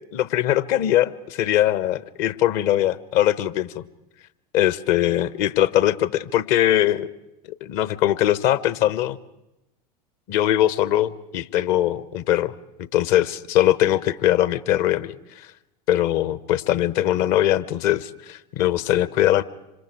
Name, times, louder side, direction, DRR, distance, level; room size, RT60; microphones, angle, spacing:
voice 1, 0.0-3.8 4.5-7.1 7.6-9.2 10.3-12.5 12.9-15.5 15.9-19.4, left 13 dB, 50° left, 17 dB, 1.0 m, -21 dB
26.5 x 26.0 x 4.7 m, 0.92 s
figure-of-eight pair, 80°, 21 cm